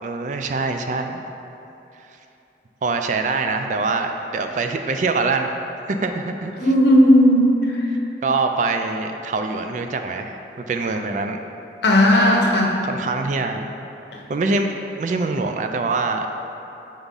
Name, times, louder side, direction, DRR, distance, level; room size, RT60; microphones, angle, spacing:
voice 1, 0.0-1.2 2.8-5.5 5.9-6.5 8.2-11.4 12.8-13.7 14.3-16.3, right 3 dB, 45° right, 6 dB, 0.3 m, -24 dB
voice 2, 6.6-7.8 11.8-12.7, equal, 75° left, -1 dB, 0.8 m, -15 dB
5.6 x 3.5 x 5.3 m, 2.9 s
head